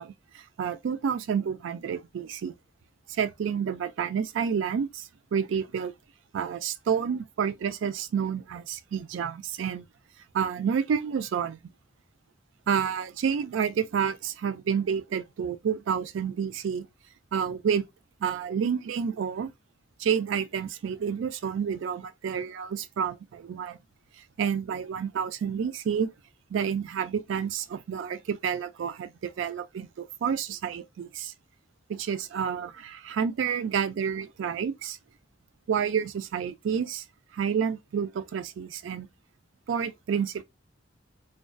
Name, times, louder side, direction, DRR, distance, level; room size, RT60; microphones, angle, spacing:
voice 1, 0.0-2.5 3.1-5.9 6.3-9.8 10.3-11.6 12.7-16.9 17.3-17.9 18.2-19.5 20.0-23.8 24.4-26.1 26.5-31.3 31.9-35.0 35.7-37.0 37.3-39.1 39.7-40.4, right 7 dB, 70° right, 0.3 m, -29 dB
2.5 x 2.2 x 2.2 m
head